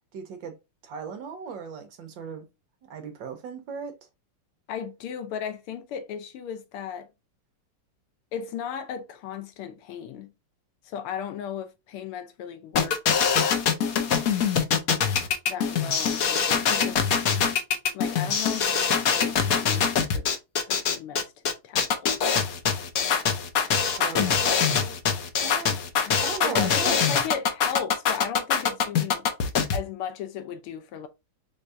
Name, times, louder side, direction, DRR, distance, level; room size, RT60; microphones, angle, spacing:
voice 1, 0.1-0.6 0.8-2.5 2.8-3.9 24.0-25.0 25.4-25.8 26.2-27.0, right 5 dB, 65° right, 1.5 m, -37 dB
voice 2, 4.7-7.1 8.3-10.3 10.8-13.2 15.5-17.2 17.9-20.3 20.7-21.2 21.6-22.1 26.0-29.3 29.7-31.1, left 8 dB, 80° left, 1.7 m, -36 dB
sound 1, 12.8-29.8, left 6 dB, 65° left, 0.9 m, -23 dB
4.8 x 3.3 x 2.5 m
omnidirectional pair, 2.4 m